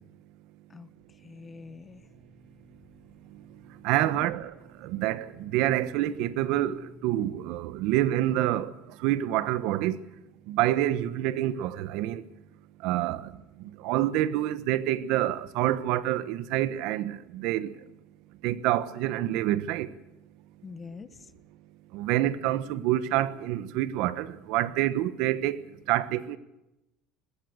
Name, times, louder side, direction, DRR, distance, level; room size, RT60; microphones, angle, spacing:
voice 1, 0.7-2.1 4.0-4.3 20.6-21.3, left 4 dB, 20° left, 1.0 m, -44 dB
sound 1, 1.1-7.5, equal, 40° right, 7.6 m, -55 dB
voice 2, 3.8-4.5 4.8-8.7 9.0-10.0 10.5-12.2 12.8-13.3 13.8-17.7 18.4-19.9 21.9-25.6 25.9-26.4, right 13 dB, 60° right, 1.2 m, -27 dB
22.5 x 20.5 x 6.6 m
cardioid pair, 155°, 0 cm